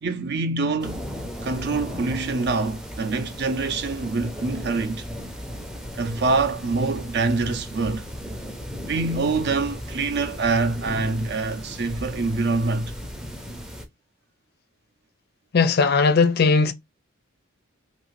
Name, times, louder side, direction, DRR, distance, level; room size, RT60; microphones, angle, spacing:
voice 1, 0.0-1.0 1.4-5.1 5.9-8.0 8.8-12.9, right 3 dB, 55° right, 0.5 m, -25 dB
sound 1, 0.8-13.9, equal, 5° right, 0.5 m, -36 dB
voice 2, 15.5-16.7, left 4 dB, 50° left, 0.4 m, -18 dB
2.7 x 2.6 x 3.1 m
head